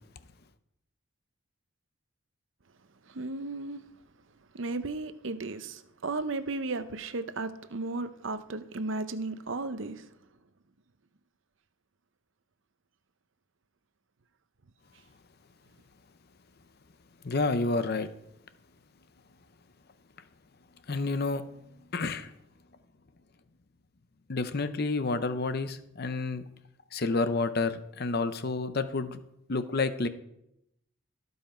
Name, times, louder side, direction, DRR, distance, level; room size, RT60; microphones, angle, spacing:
voice 1, 3.1-3.8 4.5-10.1, right 3 dB, 60° right, 0.7 m, -35 dB
voice 2, 17.2-18.1 20.9-21.4 21.9-22.3 24.3-26.4 26.9-29.2 29.5-30.1, left 3 dB, 45° left, 0.7 m, -29 dB
16.5 x 5.6 x 4.4 m
head